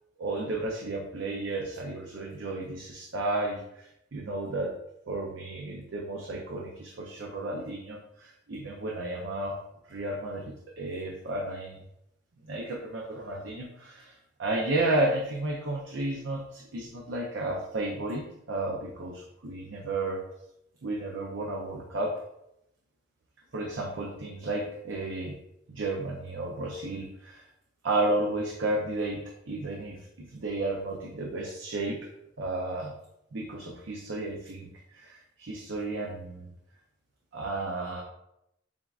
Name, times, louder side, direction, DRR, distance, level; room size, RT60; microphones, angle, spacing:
voice 1, 0.2-4.7 5.1-9.6 9.9-11.8 12.4-20.2 20.8-22.1 23.5-25.4 25.7-27.5 27.8-32.0 32.4-32.9 33.3-36.5 37.3-38.0, right 2 dB, 80° right, -1 dB, 0.6 m, -32 dB
7.1 x 2.4 x 2.4 m, 0.82 s
head